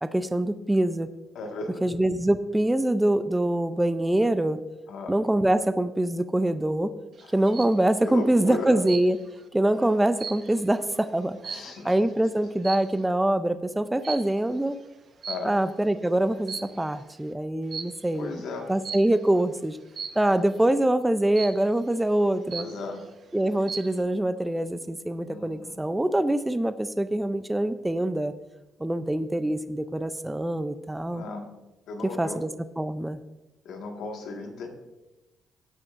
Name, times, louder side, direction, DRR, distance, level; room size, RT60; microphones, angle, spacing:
voice 1, 0.0-1.1 1.8-4.6 5.1-6.9 7.3-9.2 9.5-14.8 15.4-18.4 18.7-19.8 20.2-22.7 23.3-28.3 28.8-31.2 32.0-32.5 32.8-33.2, right 1 dB, 10° right, 11 dB, 0.5 m, -24 dB
voice 2, 1.4-1.9 4.9-5.2 7.2-7.3 8.1-8.8 11.5-11.9 15.3-15.6 18.2-18.7 22.6-23.0 25.3-25.8 31.1-31.5 31.9-32.4 33.7-34.7, left 3 dB, 80° left, 2 dB, 1.7 m, -35 dB
sound 1, 7.2-7.8 8.9-9.4 9.8-12.0 12.6-13.0 14.0-14.4 15.2-15.8 16.3-17.0 17.7-18.1 18.8-19.2 20.0-20.4 21.4-21.8 22.2-22.3 22.5-23.1 23.5-24.0, right 6 dB, 50° right, 1.1 m, -38 dB
15.5 x 9.1 x 2.6 m, 1.0 s
cardioid pair, 90°, 0 cm